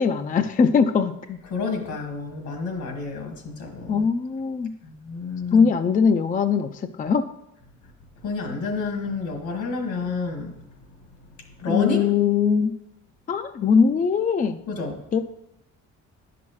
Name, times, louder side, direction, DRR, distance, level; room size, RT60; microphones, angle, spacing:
voice 1, 0.0-1.4 3.9-4.7 5.5-7.3 11.7-12.8 13.3-14.6 15.1-15.2, left 6 dB, 30° left, 8 dB, 0.4 m, -21 dB
voice 2, 1.5-4.1 4.8-5.7 8.2-10.7 11.4-12.1 14.7-15.0, left 4 dB, 75° left, 3 dB, 1.8 m, -30 dB
10.5 x 5.9 x 3.1 m, 0.84 s
cardioid pair, 90°, 30 cm